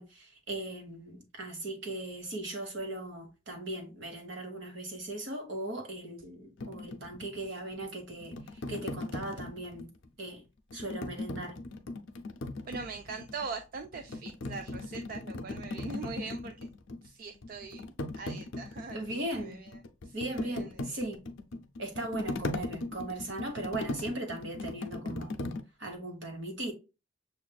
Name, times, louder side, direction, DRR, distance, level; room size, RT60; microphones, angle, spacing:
voice 1, 0.0-8.4 8.7-9.9 10.2-10.4 10.7-11.6 18.9-19.6 20.1-21.2 21.8-25.3 25.8-26.7, right 2 dB, 65° right, 1.2 m, -38 dB
sound 1, 6.6-10.1 10.7-13.5 13.8-17.1 17.4-25.6, left 2 dB, 70° left, 0.5 m, -38 dB
voice 2, 12.7-16.7 17.0-17.8 18.1-21.0, right 4 dB, 45° right, 0.3 m, -42 dB
6.7 x 2.4 x 2.2 m
head